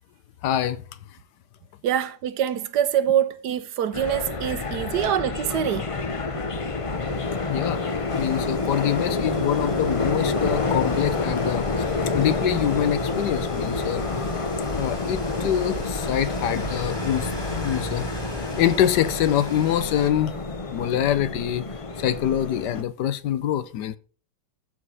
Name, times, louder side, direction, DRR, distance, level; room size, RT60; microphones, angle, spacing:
voice 1, 0.4-0.8 7.5-7.8 8.1-11.6 12.1-14.0 14.7-18.1 18.6-20.3 20.7-21.6 22.0-24.0, left 11 dB, 70° left, 1.3 m, -25 dB
voice 2, 1.8-5.9, right 10 dB, 70° right, 1.2 m, -24 dB
sound 1, 3.9-22.8, left 3 dB, 45° left, 0.4 m, -28 dB
Rain, 8.1-20.1, equal, 15° left, 1.8 m, -38 dB
12.5 x 4.9 x 5.5 m
omnidirectional pair, 1.9 m